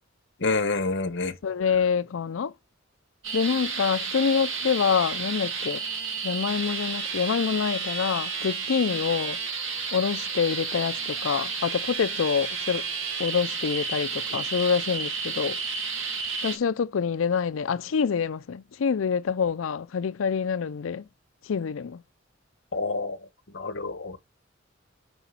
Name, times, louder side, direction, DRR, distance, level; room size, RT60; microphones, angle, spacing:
voice 1, 0.4-1.4 22.7-23.2 23.5-24.2, left 3 dB, 65° left, 1.2 m, -27 dB
voice 2, 1.4-2.5 3.3-5.8 6.2-9.4 9.9-12.9 13.2-15.6 16.4-21.0 21.5-22.0, left 6 dB, 90° left, 0.5 m, -26 dB
sound 1, 3.2-16.6, right 5 dB, 70° right, 2.2 m, -31 dB
6.8 x 5.0 x 6.0 m
head